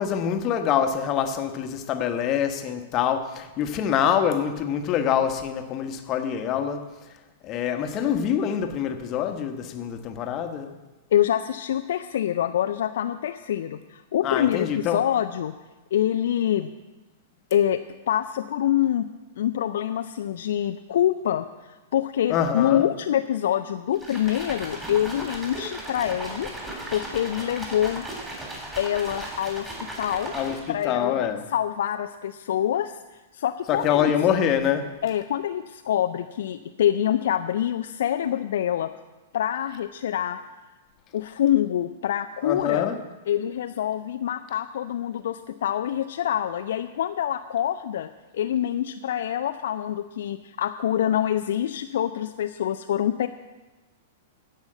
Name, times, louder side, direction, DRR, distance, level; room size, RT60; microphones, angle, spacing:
voice 1, 0.0-6.9 7.4-10.7 14.2-15.0 22.3-22.9 30.3-31.4 33.7-34.9 42.4-43.0, left 8 dB, 30° left, 1.2 m, -25 dB
voice 2, 11.1-15.5 15.9-16.7 17.5-17.8 18.1-19.1 19.4-26.5 26.9-28.1 28.8-30.3 30.7-33.0 33.3-34.1 35.0-38.9 39.3-40.4 41.1-42.9 43.3-53.3, left 11 dB, 60° left, 0.4 m, -26 dB
sound 1, 23.9-30.8, right 1 dB, 15° right, 3.5 m, -36 dB
15.5 x 5.6 x 7.9 m
figure-of-eight pair, 100°, 0 cm